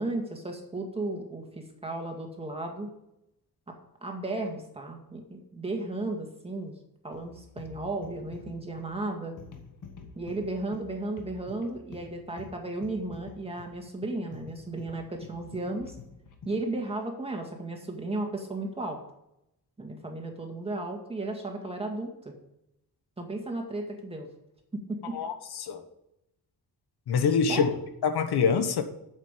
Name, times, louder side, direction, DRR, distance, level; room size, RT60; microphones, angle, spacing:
voice 1, 0.0-2.9 3.7-3.8 4.0-6.7 7.0-9.3 10.2-16.0 16.5-19.0 19.8-22.3 23.2-24.3 24.7-25.2 27.5-27.8, right 2 dB, 15° right, 2 dB, 2.0 m, -34 dB
sound 1, 7.1-16.7, left 5 dB, 55° left, 1.7 m, -48 dB
voice 2, 25.1-25.8 27.1-27.7 28.0-28.8, left 6 dB, 90° left, 8 dB, 1.4 m, -25 dB
9.0 x 7.6 x 8.9 m, 0.84 s
wide cardioid pair, 160°, 37 cm